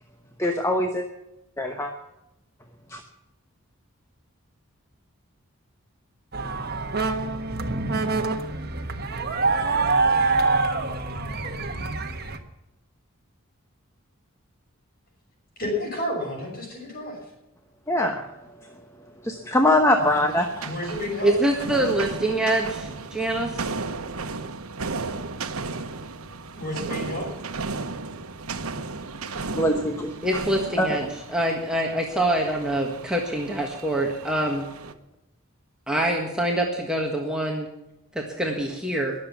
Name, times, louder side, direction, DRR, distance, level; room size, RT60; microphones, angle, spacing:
voice 1, 0.4-1.1 1.6-1.9 2.9-3.0 17.9-18.2 18.6-18.7 19.2-20.7 29.5-30.1 30.8-30.9, left 1 dB, 15° left, 3 dB, 1.0 m, -22 dB
sound 1, 6.3-12.4, right 3 dB, 45° right, 1.3 m, -25 dB
voice 2, 15.6-17.2 20.6-21.4 26.6-27.3, left 1 dB, 45° left, 0 dB, 6.2 m, -30 dB
sound 2, 20.0-34.9, right 3 dB, 85° right, 1.1 m, -35 dB
voice 3, 21.2-23.7 30.2-34.7 35.9-37.7 38.1-39.1, right 1 dB, 5° right, -1 dB, 1.5 m, -25 dB
21.5 x 7.5 x 7.2 m, 0.93 s
head